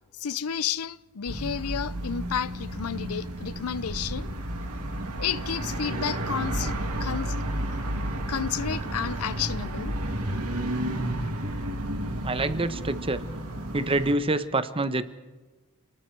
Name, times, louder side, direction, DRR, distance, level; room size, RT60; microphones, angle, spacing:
voice 1, 0.1-4.3 5.2-7.4 8.3-9.9, left 8 dB, 75° left, 0.6 m, -31 dB
sound 1, 1.3-14.1, right 1 dB, 85° right, 3.0 m, -32 dB
voice 2, 12.2-13.2 13.7-15.0, right 2 dB, 25° right, 1.1 m, -26 dB
29.0 x 20.0 x 4.7 m
head